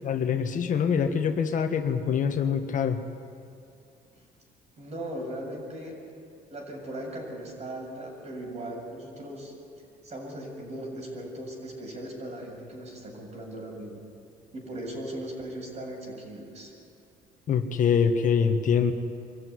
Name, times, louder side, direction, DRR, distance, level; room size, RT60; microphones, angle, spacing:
voice 1, 0.0-3.0 17.5-18.9, left 7 dB, 50° left, 6 dB, 1.5 m, -24 dB
voice 2, 4.8-6.0 6.5-9.5 10.0-14.0 14.5-16.7, right 1 dB, 40° right, 0 dB, 7.6 m, -38 dB
25.0 x 15.0 x 9.6 m, 2.5 s
cardioid pair, 110°, 17 cm